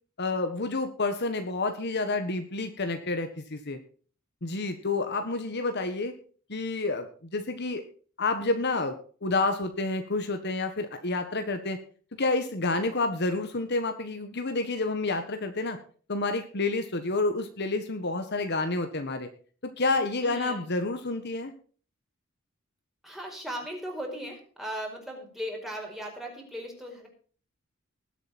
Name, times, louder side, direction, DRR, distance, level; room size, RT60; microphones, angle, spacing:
voice 1, 0.2-3.8 4.4-6.1 6.5-7.1 7.3-7.8 8.2-8.9 9.2-11.8 12.2-15.8 16.1-19.3 19.6-21.5, left 3 dB, 55° left, 7 dB, 1.4 m, -29 dB
voice 2, 20.2-20.6 23.0-27.1, equal, ahead, 0 dB, 4.7 m, -37 dB
20.0 x 8.1 x 4.2 m, 0.42 s
head